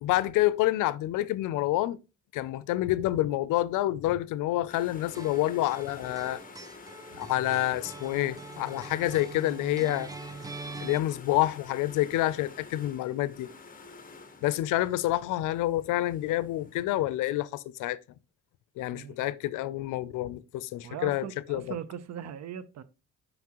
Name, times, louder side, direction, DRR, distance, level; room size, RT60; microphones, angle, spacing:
voice 1, 0.0-2.0 2.3-6.4 7.1-10.1 10.8-13.5 14.4-18.0 18.8-21.6, left 15 dB, 85° left, 0.5 m, -28 dB
sound 1, 4.7-16.8, left 4 dB, 25° left, 1.1 m, -49 dB
sound 2, 5.1-11.0, right 3 dB, 10° right, 0.5 m, -43 dB
voice 2, 18.9-19.3 20.8-22.8, right 8 dB, 60° right, 0.7 m, -39 dB
5.9 x 5.4 x 2.9 m
cardioid pair, 90°, 30 cm